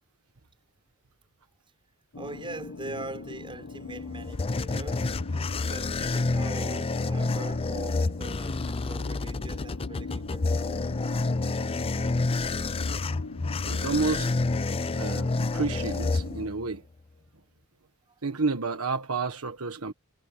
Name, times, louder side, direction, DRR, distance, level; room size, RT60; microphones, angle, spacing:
sound 1, 2.1-16.5, left 3 dB, 80° left, 1.1 m, -41 dB
voice 1, 2.1-10.9, right 2 dB, 25° right, 6.2 m, -42 dB
sound 2, 3.8-16.8, left 3 dB, 25° left, 0.5 m, -29 dB
voice 2, 13.6-14.3 15.0-16.8 18.2-19.9, right 4 dB, 70° right, 1.3 m, -30 dB
head